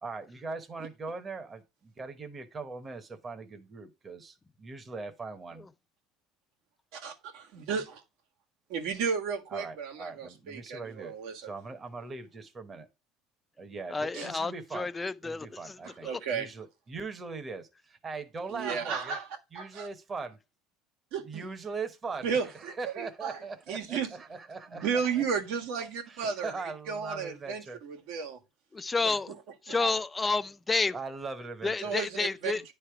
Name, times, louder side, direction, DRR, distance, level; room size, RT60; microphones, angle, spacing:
voice 1, 0.0-5.6 9.5-11.1 11.4-12.9 13.6-14.9 15.2-19.2 19.5-20.4 21.2-25.1 26.1-27.8 30.9-31.9, right 4 dB, 20° right, 1.0 m, -40 dB
voice 2, 6.9-8.0 8.7-11.4 14.1-14.3 15.8-16.5 18.5-19.2 19.5-19.9 21.1-21.4 22.2-23.4 23.7-24.1 24.7-26.5 26.9-28.4 29.7-29.9 31.8-32.5, right 6 dB, 75° right, 1.5 m, -33 dB
voice 3, 13.9-16.2 28.7-29.3 29.6-30.9 31.6-32.6, left 3 dB, 15° left, 0.4 m, -30 dB
9.7 x 3.3 x 4.7 m
cardioid pair, 135°, 0 cm